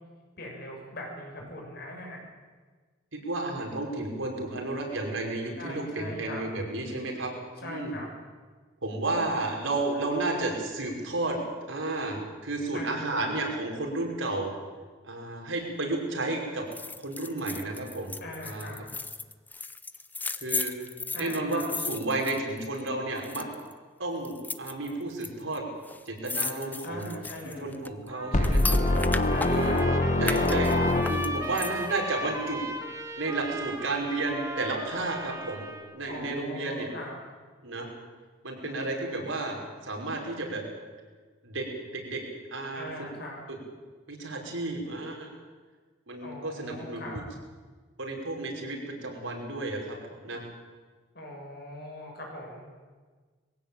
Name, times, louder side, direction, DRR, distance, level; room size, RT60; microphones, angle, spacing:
voice 1, 0.4-2.3 5.6-6.4 7.6-8.1 12.7-13.3 18.2-18.8 21.1-21.6 26.8-27.8 29.3-29.8 36.1-37.1 38.6-39.5 42.7-43.4 46.2-47.2 51.1-52.7, left 1 dB, 55° left, 0 dB, 6.8 m, -41 dB
voice 2, 3.1-7.3 7.6-8.0 8.8-11.4 11.7-14.5 15.0-16.6 17.0-18.1 18.4-18.7 20.4-20.7 21.2-23.4 24.0-25.7 26.1-27.1 27.4-28.8 29.5-29.8 30.2-32.6 33.2-35.7 35.9-36.9 37.6-37.9 38.4-40.6 41.4-41.7 41.9-42.2 42.5-43.1 43.5-43.6 44.1-45.3 46.1-47.0 48.0-50.4, right 2 dB, 90° right, 0 dB, 5.6 m, -32 dB
sound 1, 16.7-22.9 23.2-23.7 24.2-25.3 25.5-25.6 25.8-29.8 30.2-32.0 32.4-32.5, left 3 dB, 10° left, 0.6 m, -36 dB
Trumpet, 28.1-36.0, right 1 dB, 15° right, 1.8 m, -37 dB
sound 2, 28.3-31.6, left 2 dB, 40° left, 1.3 m, -24 dB
21.5 x 16.5 x 8.9 m, 1.4 s
head